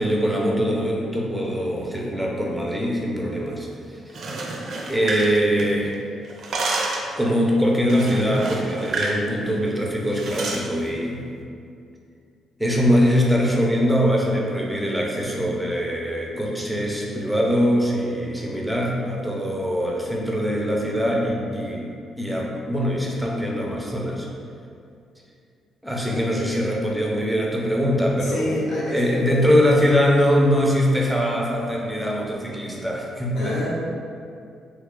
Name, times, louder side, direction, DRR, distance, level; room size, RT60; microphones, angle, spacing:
voice 1, 0.0-3.7 4.9-6.0 7.2-11.2 12.6-24.3 25.8-28.5 28.9-33.7, equal, ahead, -2 dB, 0.6 m, -22 dB
sound 1, 4.0-5.9 6.2-7.1 7.9-9.2 9.5-9.7 10.1-10.7, right 2 dB, 65° right, 0.4 m, -29 dB
voice 2, 26.0-26.5 28.2-29.3 33.3-33.7, left 1 dB, 75° left, -6 dB, 1.0 m, -29 dB
3.1 x 2.4 x 3.6 m, 2.4 s
cardioid pair, 90°, 0 cm